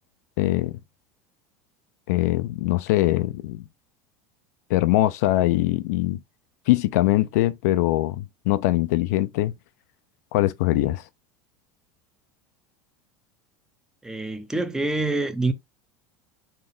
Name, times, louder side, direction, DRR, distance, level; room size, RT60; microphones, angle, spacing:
voice 1, 0.4-0.8 2.1-3.6 4.7-6.2 6.7-9.5 10.3-11.0, left 16 dB, 75° left, 0.4 m, -22 dB
voice 2, 14.0-15.5, right 2 dB, 5° right, 0.6 m, -26 dB
4.2 x 2.5 x 3.5 m
supercardioid pair, 115°, 9 cm